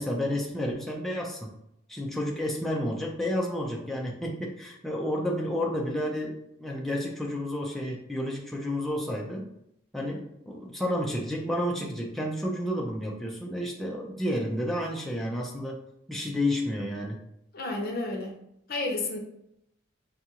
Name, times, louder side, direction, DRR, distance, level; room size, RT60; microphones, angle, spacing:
voice 1, 0.0-1.5 1.9-9.5 9.9-15.8 16.1-17.2, left 1 dB, ahead, -2 dB, 0.4 m, -31 dB
voice 2, 17.5-18.4 18.7-19.2, left 2 dB, 50° left, 2 dB, 0.8 m, -31 dB
5.5 x 2.4 x 2.8 m, 0.79 s
head